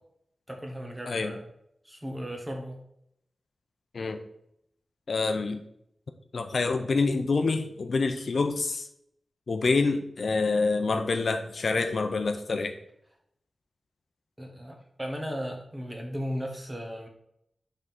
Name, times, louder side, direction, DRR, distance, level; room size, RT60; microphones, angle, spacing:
voice 1, 0.5-1.4 1.8-2.8 14.4-17.1, equal, 15° right, 1 dB, 1.4 m, -36 dB
voice 2, 5.1-5.6 6.3-8.9 9.5-12.8, left 3 dB, 65° left, 7 dB, 0.5 m, -27 dB
5.4 x 3.7 x 5.8 m, 0.75 s
wide cardioid pair, 105°, 0 cm